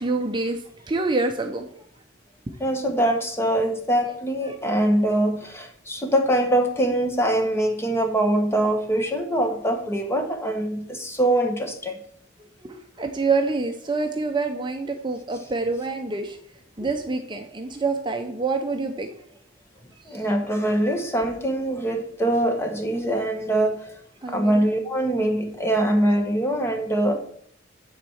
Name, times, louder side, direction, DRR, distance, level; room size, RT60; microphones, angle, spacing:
voice 1, 0.0-1.8 2.8-2.9 4.5-4.6 12.6-16.4 16.8-19.1 20.1-20.2 24.2-24.6, right 3 dB, 25° right, 4 dB, 0.7 m, -27 dB
voice 2, 2.6-12.0 20.1-23.9 24.3-27.1, right 1 dB, 15° left, 5 dB, 1.1 m, -23 dB
9.3 x 4.2 x 7.1 m, 0.64 s
head